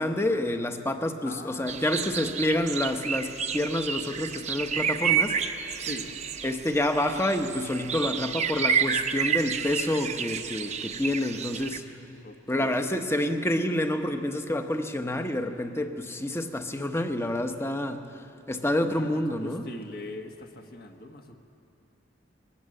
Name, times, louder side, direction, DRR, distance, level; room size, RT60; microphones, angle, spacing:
voice 1, 0.0-5.4 5.7-5.9 6.4-11.8 12.5-18.1 18.5-19.6, left 1 dB, 15° left, 7 dB, 1.0 m, -28 dB
voice 2, 1.2-2.4 5.8-6.1 11.4-11.8 12.2-13.0 18.6-21.3, left 1 dB, 50° left, 3 dB, 1.5 m, -42 dB
sound 1, 1.7-11.8, right 7 dB, 35° right, 0.8 m, -30 dB
21.5 x 18.0 x 7.7 m, 2.5 s
head